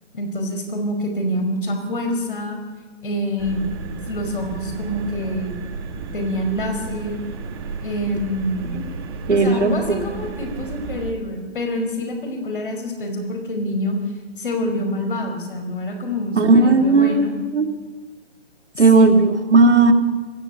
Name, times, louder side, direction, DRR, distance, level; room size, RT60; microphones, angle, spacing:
voice 1, 0.1-2.6 3.0-3.7 4.1-5.6 6.0-7.2 7.8-8.8 9.3-14.0 14.4-17.3 18.7-19.2, left 1 dB, 45° left, 4 dB, 5.0 m, -26 dB
sound 1, 3.4-11.1, right 4 dB, 20° right, 1.6 m, -33 dB
voice 2, 9.3-10.0 16.3-17.3 17.5-17.7 18.8-19.9, right 3 dB, 75° right, 2 dB, 3.4 m, -15 dB
20.0 x 15.0 x 8.8 m, 1.3 s
hypercardioid pair, 165°, 36 cm